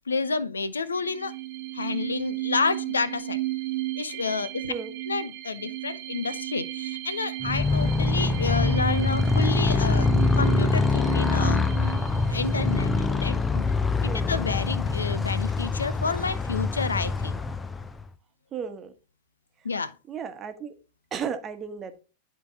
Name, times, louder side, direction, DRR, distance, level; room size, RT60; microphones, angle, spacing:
voice 1, 0.1-1.3 1.7-3.4 4.0-4.7 5.1-10.1 10.4-11.6 12.3-13.7 14.2-17.4 19.6-20.0, left 4 dB, 75° left, 0.5 m, -29 dB
sound 1, 0.9-14.3, right 16 dB, 55° right, 1.1 m, -35 dB
Motorcycle, 7.4-18.1, left 3 dB, 15° left, 0.5 m, -24 dB
voice 2, 18.5-18.9 20.1-20.7 21.1-22.0, right 7 dB, 25° right, 1.1 m, -34 dB
11.0 x 3.9 x 3.7 m
figure-of-eight pair, 90°, 0 cm